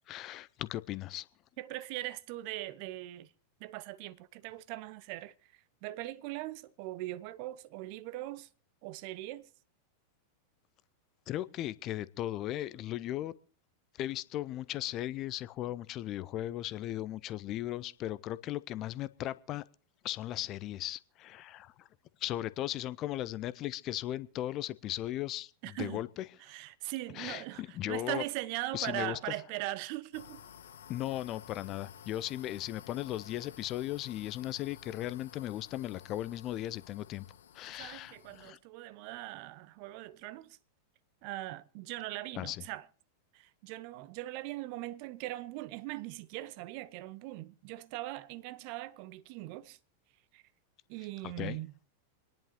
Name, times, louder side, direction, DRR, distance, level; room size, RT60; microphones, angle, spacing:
voice 1, 0.1-1.3 11.3-13.3 14.0-19.6 20.0-21.9 22.2-26.2 27.2-28.2 28.7-29.2 30.9-37.3 37.5-38.6 42.4-42.6 51.4-51.6, left 14 dB, 35° left, 0.5 m, -37 dB
voice 2, 1.6-3.3 3.6-8.5 8.8-9.5 25.6-26.0 26.4-30.4 37.7-40.6 41.2-42.9 43.3-49.8 50.3-50.4 50.9-51.7, right 17 dB, 45° right, 0.6 m, -40 dB
sound 1, 30.1-38.5, left 8 dB, 65° left, 0.9 m, -53 dB
27.0 x 10.5 x 2.9 m
figure-of-eight pair, 90°, 0 cm